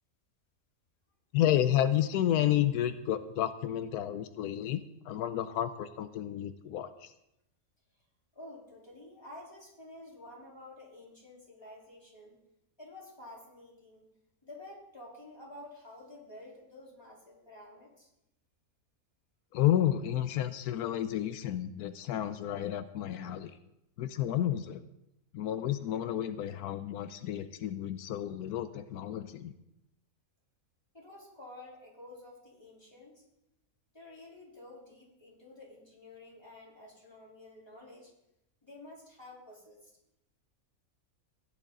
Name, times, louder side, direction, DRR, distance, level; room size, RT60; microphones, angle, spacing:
voice 1, 1.3-7.1 19.5-23.6 24.0-24.8 25.3-29.5, left 11 dB, 85° left, 11 dB, 1.1 m, -31 dB
voice 2, 8.3-12.4 12.8-14.0 14.4-18.1 30.9-33.2 33.9-38.1 38.6-39.9, left 1 dB, 15° left, -4 dB, 3.8 m, -50 dB
15.5 x 11.0 x 3.9 m, 0.85 s
omnidirectional pair, 1.6 m